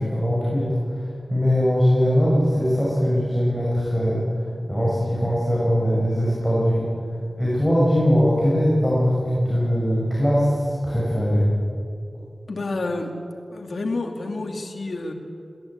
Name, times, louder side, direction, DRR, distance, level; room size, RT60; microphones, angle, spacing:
voice 1, 0.0-6.9 7.4-11.5, equal, ahead, -6 dB, 6.3 m, -21 dB
voice 2, 12.5-13.1 13.5-15.1, left 2 dB, 80° left, 3 dB, 2.5 m, -29 dB
21.0 x 18.5 x 8.9 m, 2.5 s
wide cardioid pair, 80°, 0 cm